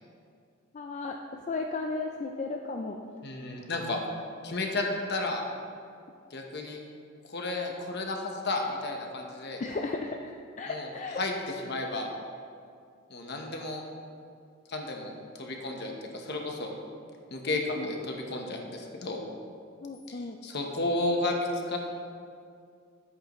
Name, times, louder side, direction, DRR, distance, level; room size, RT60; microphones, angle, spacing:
voice 1, 0.7-3.1 3.4-3.7 9.6-11.3 17.4-18.0 19.8-20.4, left 3 dB, 35° left, 2 dB, 0.4 m, -35 dB
voice 2, 3.2-4.0 4.4-5.4 6.3-6.8 7.2-9.6 10.7-10.9 11.2-11.3 11.6-12.1 13.1-13.8 14.7-16.7 17.3-19.2 20.1-20.2 20.4-21.8, left 2 dB, 55° left, 2 dB, 1.1 m, -32 dB
10.5 x 8.4 x 3.1 m, 2.3 s
head